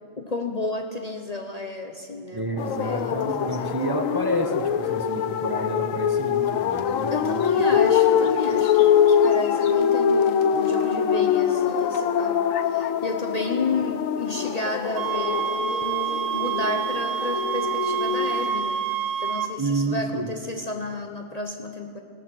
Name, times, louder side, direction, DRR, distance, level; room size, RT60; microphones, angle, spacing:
voice 1, 0.2-3.8 7.1-22.0, left 2 dB, 35° left, 3 dB, 0.9 m, -32 dB
voice 2, 2.3-7.6 19.6-20.3, right 2 dB, 20° right, 4 dB, 0.9 m, -29 dB
sound 1, 2.6-18.5, left 8 dB, 80° left, 1.1 m, -23 dB
sound 2, 15.0-19.5, right 8 dB, 80° right, 1.1 m, -27 dB
18.0 x 12.5 x 6.3 m, 2.1 s
omnidirectional pair, 1.3 m